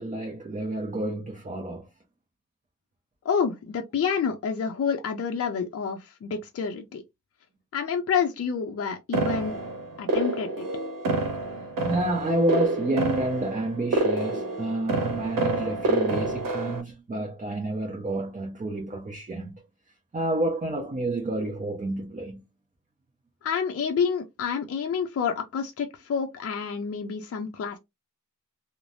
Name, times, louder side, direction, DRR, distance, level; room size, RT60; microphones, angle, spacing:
voice 1, 0.0-1.9 11.3-19.6 20.1-22.4, right 1 dB, 25° right, 0.7 m, -29 dB
voice 2, 3.2-7.0 7.7-9.5 10.0-10.7 23.4-27.8, left 6 dB, 45° left, 0.6 m, -28 dB
sound 1, 9.1-16.8, right 2 dB, 85° right, 0.8 m, -28 dB
3.2 x 2.1 x 2.5 m
wide cardioid pair, 110°, 33 cm